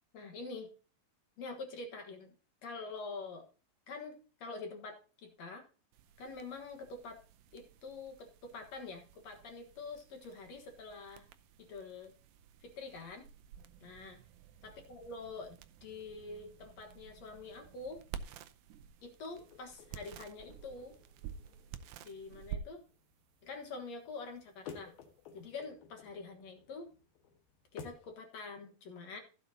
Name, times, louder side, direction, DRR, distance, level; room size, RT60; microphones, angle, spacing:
voice 1, 0.1-0.7 1.4-2.3 2.6-3.5 3.9-5.7 6.2-7.2 7.5-11.3 11.6-12.1 12.6-13.3 13.8-14.2 14.6-18.0 19.0-21.0 22.0-22.8 23.4-24.9 25.3-26.9 27.7-29.2, left 3 dB, 55° left, 4 dB, 2.2 m, -46 dB
sound 1, 5.9-25.5, right 8 dB, 80° right, 1.9 m, -52 dB
sound 2, 19.4-28.1, left 6 dB, 75° left, 3.2 m, -55 dB
15.5 x 7.3 x 2.8 m, 0.36 s
omnidirectional pair, 4.3 m